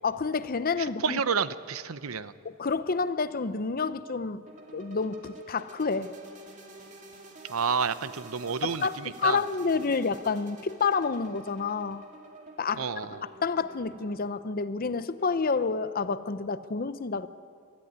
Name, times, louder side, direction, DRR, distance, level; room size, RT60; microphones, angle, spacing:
voice 1, 0.0-1.2 2.4-4.4 4.7-6.1 8.6-12.0 12.6-12.8 13.2-17.3, left 4 dB, 45° left, 13 dB, 0.7 m, -29 dB
voice 2, 0.8-2.3 7.5-9.4 12.8-13.2, right 6 dB, 80° right, 14 dB, 0.7 m, -30 dB
sound 1, 4.5-14.1, right 2 dB, 35° right, 2.3 m, -49 dB
22.0 x 13.5 x 9.7 m, 2.4 s
head